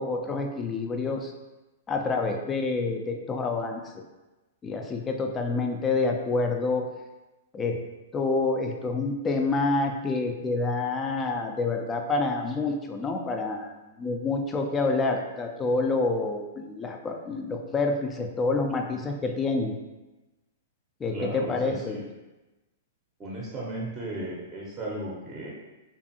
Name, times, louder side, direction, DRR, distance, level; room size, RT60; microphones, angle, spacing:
voice 1, 0.0-1.3 1.9-4.0 4.6-6.9 7.5-7.8 8.1-19.7 21.0-22.0, left 3 dB, 20° left, 3 dB, 0.4 m, -28 dB
voice 2, 21.1-22.0 23.2-25.5, right 1 dB, 20° right, -5 dB, 0.6 m, -35 dB
2.5 x 2.4 x 2.6 m, 1.1 s
hypercardioid pair, 110°, 0 cm